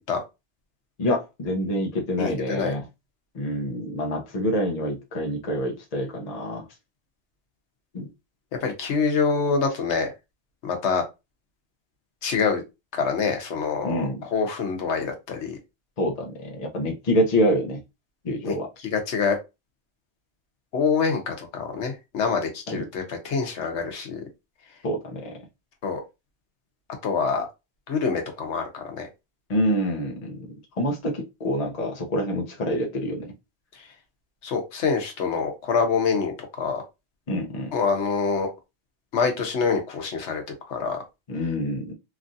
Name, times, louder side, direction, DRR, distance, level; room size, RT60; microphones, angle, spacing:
voice 1, 1.0-2.8 3.3-6.7 7.9-8.1 13.8-14.2 16.0-17.8 18.2-18.7 22.7-22.8 24.8-25.4 29.5-30.5 30.8-33.3 37.3-37.7 41.3-41.9, equal, 40° left, 2 dB, 0.7 m, -26 dB
voice 2, 2.2-2.7 8.6-10.1 10.6-11.0 12.2-12.6 13.0-15.6 18.4-18.5 18.9-19.4 20.7-24.2 25.8-26.0 27.0-27.5 27.9-29.1 34.4-36.8 37.7-38.5 39.1-40.4 40.7-41.0, left 5 dB, 85° left, 4 dB, 1.1 m, -25 dB
3.0 x 2.4 x 2.6 m, 0.24 s
omnidirectional pair, 1.1 m